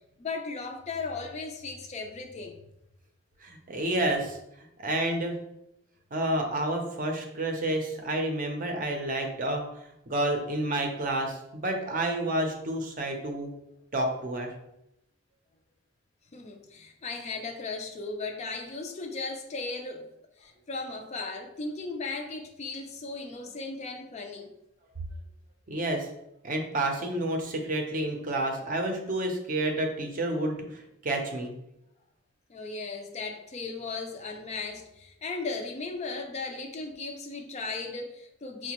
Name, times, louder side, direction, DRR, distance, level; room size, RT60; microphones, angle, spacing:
voice 1, 0.2-2.6 16.3-20.1 20.4-24.5 32.5-38.7, left 3 dB, 35° left, 4 dB, 0.4 m, -36 dB
voice 2, 3.4-4.4 4.8-5.3 6.1-13.5 13.9-14.5 25.7-26.1 26.4-31.5, right 1 dB, 45° right, 3 dB, 0.5 m, -30 dB
4.8 x 2.2 x 2.9 m, 0.83 s
head